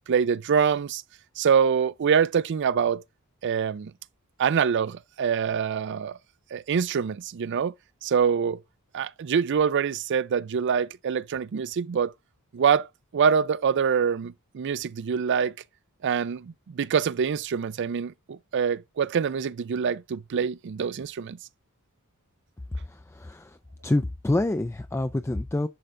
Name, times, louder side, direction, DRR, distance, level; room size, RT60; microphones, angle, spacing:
voice 1, 0.1-1.0 1.4-3.0 3.4-3.9 4.4-6.2 6.5-7.7 8.0-8.6 8.9-12.1 12.5-12.9 13.1-15.5 16.0-21.4, right 7 dB, 55° right, 0.4 m, -25 dB
voice 2, 22.7-23.6 23.8-25.7, left 2 dB, 10° left, 0.4 m, -27 dB
11.0 x 3.8 x 3.3 m
head